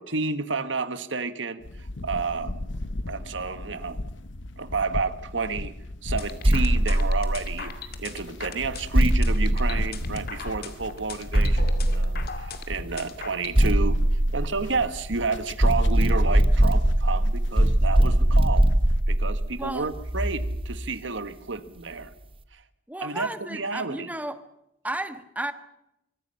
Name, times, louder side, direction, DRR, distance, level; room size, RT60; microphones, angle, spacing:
voice 1, 0.0-2.6 3.1-4.0 4.6-5.7 6.0-14.0 14.3-18.7 19.1-22.1 22.5-22.6 23.0-24.1, right 4 dB, 80° right, 11 dB, 1.7 m, -30 dB
sound 1, 1.6-19.0, left 1 dB, 75° left, 1.1 m, -38 dB
sound 2, 6.2-13.6, left 6 dB, 55° left, 2.3 m, -40 dB
sound 3, 6.4-7.9 8.9-10.6 11.3-12.7 13.5-15.1 15.6-20.9, right 1 dB, 30° right, 1.2 m, -22 dB
voice 2, 19.6-19.9 22.9-24.4 24.8-25.5, right 1 dB, 10° right, 9 dB, 1.5 m, -33 dB
24.5 x 23.5 x 5.7 m, 0.84 s
head